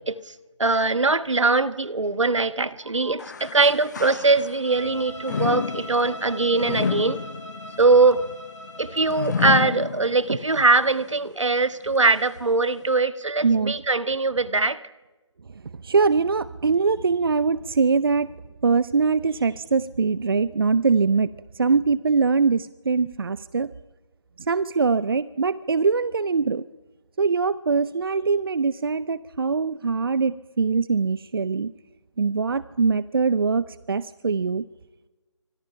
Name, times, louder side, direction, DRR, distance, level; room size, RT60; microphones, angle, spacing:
voice 1, 0.6-7.2 7.8-8.2 8.8-14.8, right 3 dB, 75° right, 13 dB, 1.5 m, -21 dB
sound 1, 3.2-4.8 5.2-10.5 11.0-11.1 11.9-12.0, left 6 dB, 35° left, 1.0 m, -30 dB
Bowed string instrument, 4.6-9.5, equal, 75° left, 6.5 m, -40 dB
voice 2, 13.4-13.7 15.8-18.3 18.6-23.7 24.4-26.6 27.2-31.7 32.2-34.7, right 4 dB, 50° right, 17 dB, 0.7 m, -22 dB
28.0 x 24.5 x 5.7 m, 1.2 s
figure-of-eight pair, 160°, 16 cm